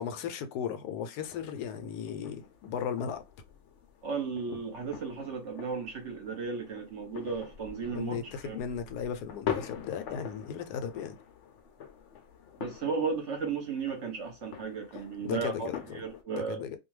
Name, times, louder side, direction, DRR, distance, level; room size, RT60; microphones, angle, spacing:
voice 1, 0.0-3.2 7.9-11.2 15.2-16.0 16.3-16.8, left 7 dB, 85° left, 1.1 m, -36 dB
sound 1, 1.2-16.2, left 8 dB, 65° left, 0.8 m, -44 dB
voice 2, 4.0-8.1 8.4-8.6 12.6-16.6, right 5 dB, 55° right, 0.9 m, -35 dB
2.6 x 2.2 x 3.1 m
omnidirectional pair, 1.6 m